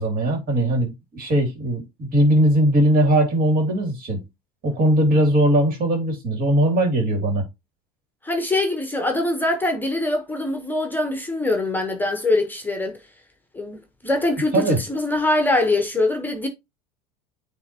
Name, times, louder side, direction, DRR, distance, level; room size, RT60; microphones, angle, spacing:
voice 1, 0.0-4.2 4.6-7.4 14.5-14.8, right 1 dB, 45° right, 2.8 m, -20 dB
voice 2, 8.2-13.0 13.5-13.8 14.0-16.5, left 2 dB, 10° left, 1.1 m, -23 dB
9.3 x 3.4 x 2.9 m
hypercardioid pair, 85°, 20 cm